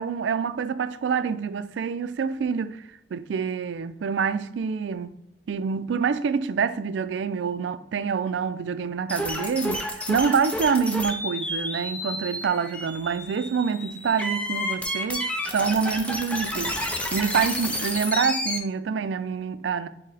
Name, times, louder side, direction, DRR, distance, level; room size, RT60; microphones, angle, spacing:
voice 1, 0.0-2.8 3.1-5.1 5.5-16.8 17.1-19.9, right 6 dB, 90° right, 0.4 m, -26 dB
sound 1, 9.1-18.6, left 1 dB, 5° left, 0.5 m, -30 dB
6.2 x 2.1 x 4.0 m
head